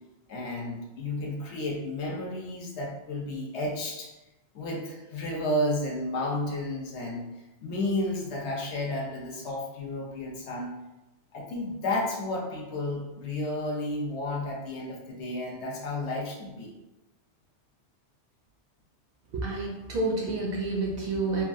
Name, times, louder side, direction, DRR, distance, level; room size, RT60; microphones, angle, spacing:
voice 1, 0.3-4.1 4.5-7.2 7.6-10.7 11.3-16.7, left 1 dB, 75° left, -1 dB, 0.9 m, -32 dB
voice 2, 19.3-21.4, right 3 dB, 65° right, -1 dB, 0.7 m, -29 dB
2.9 x 2.3 x 2.5 m, 1.0 s
omnidirectional pair, 1.2 m